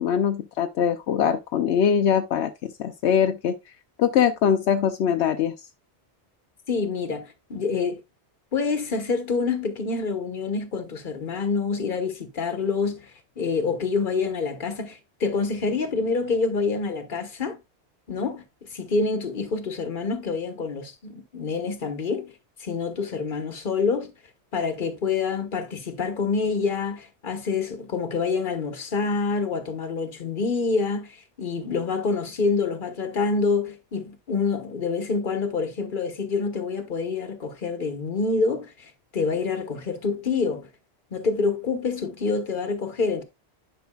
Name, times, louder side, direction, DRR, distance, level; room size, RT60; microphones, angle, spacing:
voice 1, 0.0-3.6 4.0-5.5, left 8 dB, 80° left, 0.9 m, -22 dB
voice 2, 6.7-8.0 8.5-17.6 18.1-22.3 22.6-24.1 24.5-40.7 41.1-43.2, left 4 dB, 50° left, 1.3 m, -27 dB
10.5 x 5.4 x 2.3 m
omnidirectional pair, 1.2 m